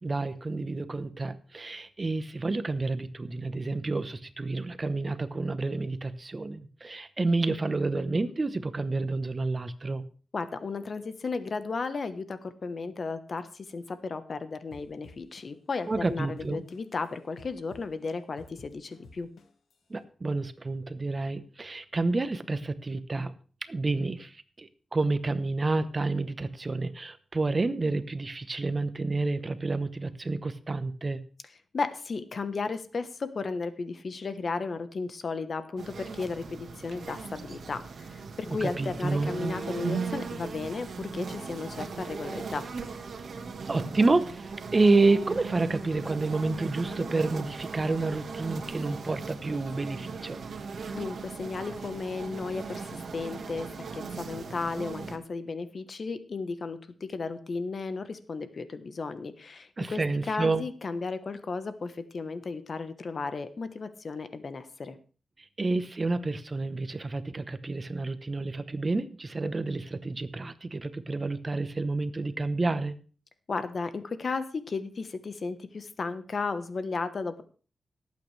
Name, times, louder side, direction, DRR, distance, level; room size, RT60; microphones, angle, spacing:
voice 1, 0.0-10.1 15.9-16.6 19.9-23.3 23.7-31.2 38.5-39.4 43.7-50.4 59.8-60.6 65.6-72.9, right 3 dB, 35° right, 12 dB, 0.9 m, -29 dB
voice 2, 10.3-19.3 31.7-42.6 50.9-60.0 60.3-65.0 73.5-77.4, left 4 dB, 55° left, 11 dB, 1.1 m, -34 dB
sound 1, 14.7-17.1 17.4-19.7, left 3 dB, 90° left, 1.4 m, -51 dB
sound 2, 35.8-55.2, right 5 dB, 70° right, 1.5 m, -38 dB
18.5 x 8.5 x 3.3 m, 0.39 s
cardioid pair, 80°, 0 cm